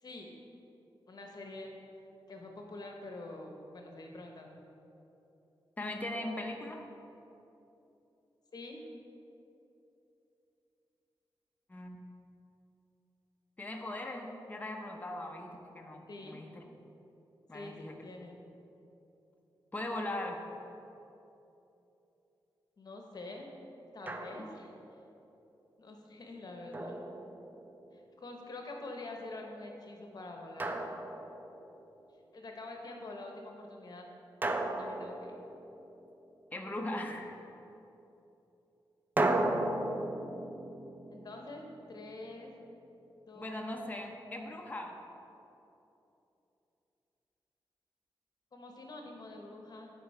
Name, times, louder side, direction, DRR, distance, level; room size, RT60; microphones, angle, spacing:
voice 1, 1.1-1.7 2.3-4.6 8.5-8.8 16.1-16.4 17.5-18.4 22.8-23.5 23.9-24.7 25.8-27.0 27.9-30.8 32.3-34.1 34.8-35.4 41.1-42.5 43.3-43.8 48.5-49.9, left 2 dB, 50° left, 1 dB, 1.0 m, -46 dB
voice 2, 5.8-6.8 11.7-12.0 13.6-16.6 17.5-18.0 19.7-20.4 36.5-37.4 43.3-45.0, left 1 dB, 20° left, 1 dB, 0.7 m, -39 dB
Drum, 24.1-24.7 26.7-27.8 30.6-31.8 34.4-36.1 39.2-42.1, right 2 dB, 20° right, 0.4 m, -35 dB
9.2 x 4.9 x 4.2 m, 3.0 s
wide cardioid pair, 115°, 9 cm